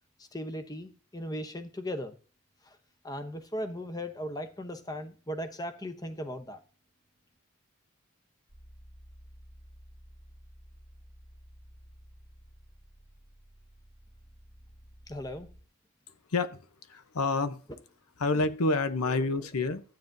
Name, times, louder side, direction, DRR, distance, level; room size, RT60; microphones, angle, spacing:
voice 1, 0.2-2.1 2.7-2.8 3.0-6.6 15.1-15.5, equal, 15° left, 0.8 m, -37 dB
sound 1, 8.5-15.6, equal, 60° left, 6.2 m, -54 dB
voice 2, 16.9-17.6 18.2-19.8, left 3 dB, 85° left, 0.8 m, -28 dB
13.0 x 8.9 x 2.6 m
head